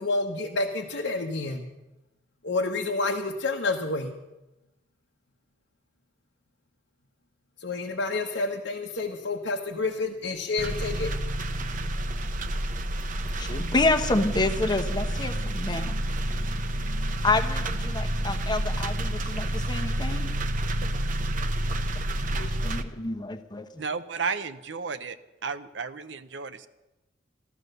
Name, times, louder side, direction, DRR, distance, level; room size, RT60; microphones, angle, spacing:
voice 1, 0.0-1.6 2.4-4.1 7.6-11.1, left 3 dB, 75° left, 0 dB, 1.2 m, -29 dB
sound 1, 10.6-22.8, right 1 dB, 45° right, 0.9 m, -29 dB
voice 2, 13.4-16.0 17.2-20.3 22.3-23.8, left 2 dB, 25° left, 6 dB, 1.1 m, -28 dB
voice 3, 23.8-25.2 25.4-26.7, right 5 dB, 70° right, 12 dB, 0.8 m, -33 dB
14.5 x 14.0 x 6.7 m, 1.0 s
head